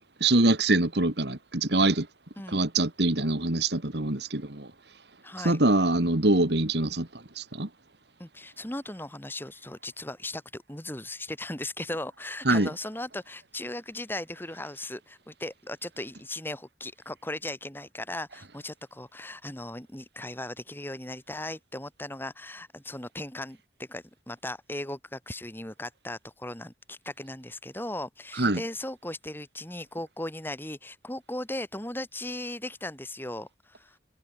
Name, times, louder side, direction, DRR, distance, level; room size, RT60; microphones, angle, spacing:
voice 1, 0.2-2.1 2.5-4.7 5.4-7.1 7.4-7.7 12.5-12.7 28.4-28.6, right 2 dB, 65° right, 2.3 m, -24 dB
voice 2, 5.2-5.6 8.2-34.0, left 1 dB, 10° left, 2.8 m, -37 dB
head